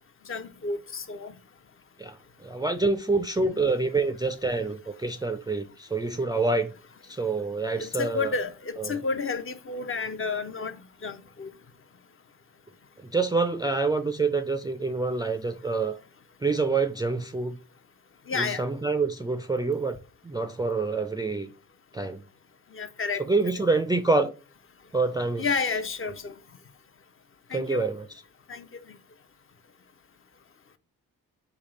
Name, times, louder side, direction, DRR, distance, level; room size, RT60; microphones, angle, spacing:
voice 1, 0.3-1.3 7.8-11.5 18.3-18.6 22.7-23.2 25.4-26.3 27.5-27.9 28.5-29.0, left 4 dB, 35° left, 0.6 m, -31 dB
voice 2, 2.0-6.7 7.0-8.3 8.8-9.0 13.0-16.0 16.4-17.6 18.3-20.0 20.2-21.5 21.9-22.2 23.2-24.3 24.9-25.6 27.5-28.1, right 3 dB, 10° right, 0.3 m, -27 dB
3.5 x 2.4 x 3.8 m
supercardioid pair, 50°, 37 cm